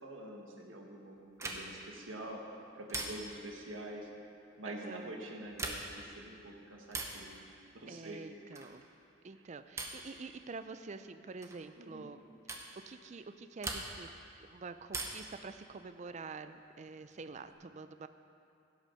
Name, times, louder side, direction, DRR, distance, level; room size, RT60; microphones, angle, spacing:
voice 1, 0.0-2.4 2.7-4.1 4.6-7.4 7.7-8.2 9.3-9.4 11.8-12.1, right 1 dB, 80° right, 0 dB, 1.5 m, -46 dB
sound 1, 1.4-1.9 2.9-3.5 5.4-6.1 6.9-7.3 8.5-8.9 9.8-10.1 11.4-11.6 12.5-12.7 13.6-14.2 14.9-15.4 16.8-17.5, right 2 dB, 15° right, 0.8 m, -41 dB
voice 2, 4.7-5.1 7.9-8.8 9.2-12.2 12.5-14.1 14.4-18.1, right 4 dB, 35° right, 11 dB, 0.4 m, -47 dB
16.0 x 6.3 x 5.7 m, 2.6 s
head